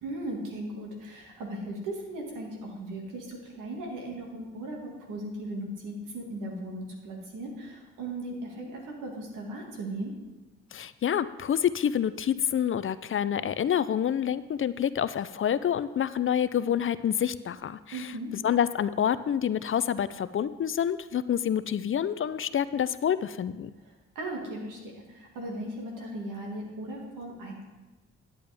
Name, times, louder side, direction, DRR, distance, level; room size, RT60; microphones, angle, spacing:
voice 1, 0.0-10.2 17.9-18.3 23.8-27.6, right 1 dB, 85° right, 0 dB, 1.9 m, -37 dB
voice 2, 10.7-18.1 18.4-23.7, left 9 dB, 45° left, 15 dB, 0.4 m, -27 dB
10.5 x 8.5 x 3.4 m, 1.1 s
supercardioid pair, 55°, 31 cm